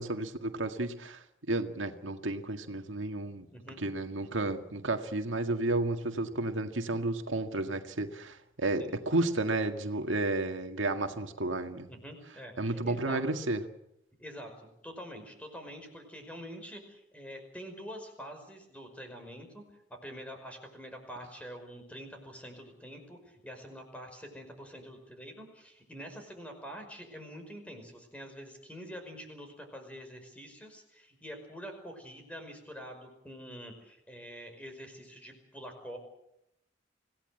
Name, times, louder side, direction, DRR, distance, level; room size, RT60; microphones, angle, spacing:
voice 1, 0.0-3.5 3.8-11.9 12.6-13.6, right 2 dB, 85° right, 6 dB, 1.9 m, -32 dB
voice 2, 11.9-13.2 14.2-19.6 19.9-36.0, equal, 5° left, 4 dB, 5.2 m, -46 dB
26.0 x 17.0 x 7.9 m, 0.80 s
head